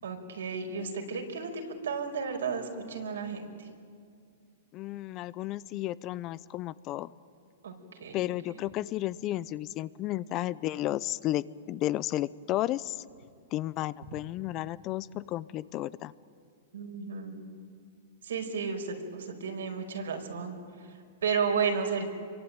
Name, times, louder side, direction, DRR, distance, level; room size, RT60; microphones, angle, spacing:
voice 1, 0.0-3.7 7.6-7.7 8.0-8.6 16.7-17.4 18.2-22.0, right 5 dB, 80° right, 3 dB, 5.2 m, -33 dB
voice 2, 4.7-7.1 8.1-13.0 13.5-16.1, left 15 dB, 40° left, 18 dB, 0.7 m, -33 dB
27.0 x 23.5 x 9.2 m, 2.2 s
hypercardioid pair, 120°, 0 cm